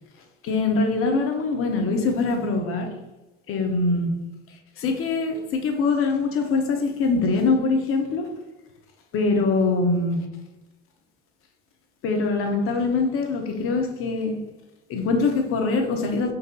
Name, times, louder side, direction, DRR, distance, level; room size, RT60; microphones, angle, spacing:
voice 1, 0.4-2.9 3.5-4.1 4.8-8.3 9.1-10.3 12.0-14.4 14.9-16.3, left 3 dB, 45° left, 4 dB, 0.7 m, -23 dB
4.0 x 2.5 x 2.3 m, 1.0 s
hypercardioid pair, 70°, 31 cm